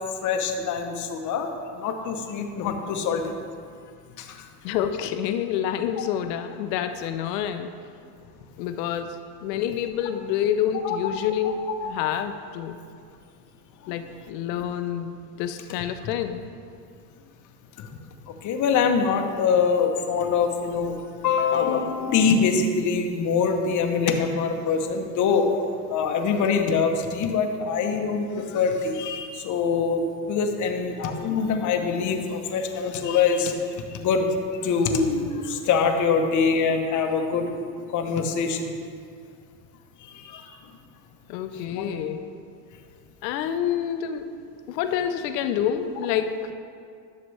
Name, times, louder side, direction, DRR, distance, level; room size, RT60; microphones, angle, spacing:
voice 1, 0.2-3.2 4.2-4.4 10.8-11.0 11.4-11.5 11.8-11.9 13.8-13.9 17.8-17.9 18.4-21.0 21.2-25.4 25.9-33.6 33.9-34.3 34.6-37.5 37.9-38.8 40.0-40.6 41.5-41.9, left 5 dB, 35° left, 4 dB, 0.9 m, -24 dB
voice 2, 4.6-7.7 8.6-12.8 13.9-16.4 41.3-42.2 43.2-44.3 44.7-46.5, left 9 dB, 75° left, 9 dB, 0.8 m, -28 dB
11.0 x 6.7 x 3.3 m, 2.2 s
supercardioid pair, 115°, 50 cm